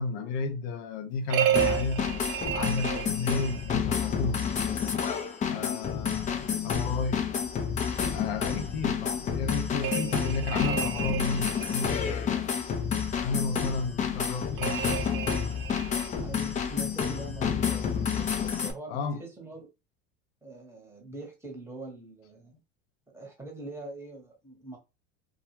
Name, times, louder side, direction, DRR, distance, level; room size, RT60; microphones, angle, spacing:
voice 1, 0.0-2.1 2.5-4.4 5.5-7.2 8.1-12.5 13.2-14.8 18.9-19.2, left 4 dB, 75° left, 0.6 m, -33 dB
sound 1, 1.3-3.8 9.8-11.9 14.6-16.1, right 11 dB, 45° right, 0.4 m, -31 dB
sound 2, 1.5-18.7, left 7 dB, 25° left, 0.4 m, -30 dB
voice 2, 16.1-19.7 20.4-22.5 23.1-24.8, right 2 dB, 10° right, 0.9 m, -43 dB
2.3 x 2.3 x 2.9 m
supercardioid pair, 115°, 31 cm